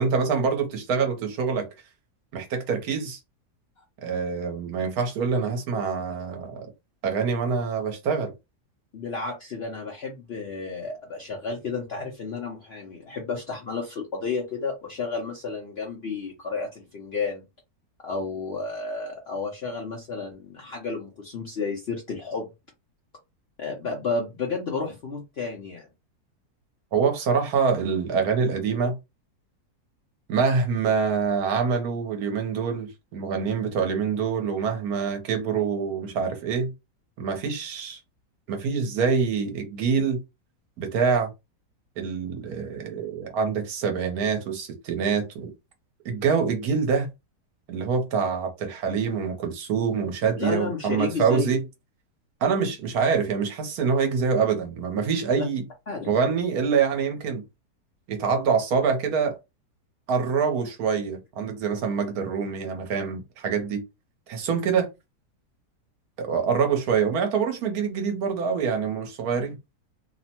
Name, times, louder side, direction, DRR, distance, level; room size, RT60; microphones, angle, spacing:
voice 1, 0.0-1.7 2.3-3.2 4.0-6.7 7.0-8.3 26.9-29.0 30.3-36.7 37.2-38.0 38.5-40.2 40.8-41.3 42.0-45.5 46.0-47.1 47.7-51.6 52.4-55.6 56.0-57.4 58.1-59.4 60.1-63.8 64.3-64.9 66.2-69.6, right 5 dB, 70° right, 1.2 m, -25 dB
voice 2, 8.9-17.4 18.0-22.5 23.6-25.9 50.4-51.6 55.4-55.5 55.9-56.2, left 4 dB, 60° left, 0.6 m, -32 dB
3.0 x 2.1 x 2.8 m
omnidirectional pair, 1.7 m